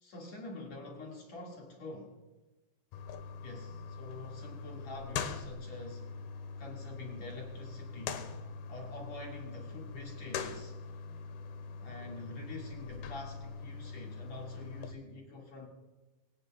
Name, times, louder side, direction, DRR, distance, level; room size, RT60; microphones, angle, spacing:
voice 1, 0.0-2.2 3.4-6.1 6.6-10.8 11.8-15.7, left 2 dB, 50° left, -1 dB, 2.7 m, -46 dB
sound 1, 2.9-14.9, left 5 dB, 75° left, 2.9 m, -42 dB
24.5 x 17.5 x 2.3 m, 1.2 s
omnidirectional pair, 4.6 m